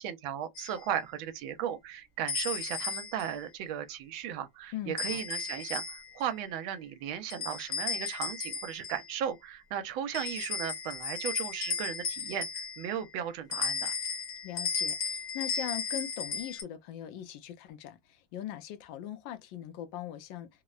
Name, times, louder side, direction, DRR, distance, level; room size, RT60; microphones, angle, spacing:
voice 1, 0.0-14.0, right 9 dB, 75° right, 1.4 m, -36 dB
sound 1, 0.5-0.8 2.3-3.3 5.0-6.2 7.3-9.1 10.1-13.0 13.5-16.6, left 5 dB, 50° left, 1.1 m, -35 dB
voice 2, 4.7-5.2 14.4-18.0 18.3-20.5, left 11 dB, 75° left, 1.2 m, -40 dB
3.5 x 2.0 x 2.3 m
omnidirectional pair, 2.3 m